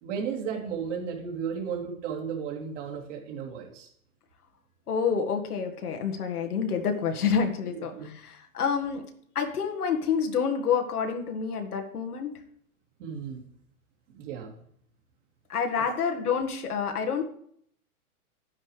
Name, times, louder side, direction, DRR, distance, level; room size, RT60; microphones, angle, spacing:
voice 1, 0.0-3.9 7.6-8.1 13.0-13.4 14.1-14.5 15.8-15.9, right 7 dB, 55° right, -1 dB, 3.3 m, -34 dB
voice 2, 4.9-9.0 9.4-12.3 15.5-17.3, left 6 dB, 90° left, 4 dB, 1.8 m, -28 dB
10.5 x 9.6 x 3.3 m, 0.65 s
hypercardioid pair, 135°, 44 cm